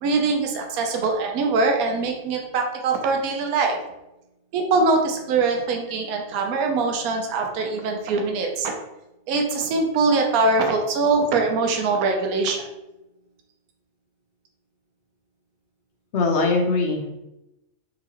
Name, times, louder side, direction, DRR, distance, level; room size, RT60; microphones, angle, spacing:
voice 1, 0.0-3.8 4.5-8.7 9.3-12.7, right 3 dB, 80° right, 3 dB, 1.1 m, -22 dB
voice 2, 16.1-17.1, left 3 dB, 60° left, 1 dB, 0.8 m, -22 dB
3.8 x 2.9 x 2.9 m, 0.93 s
omnidirectional pair, 1.5 m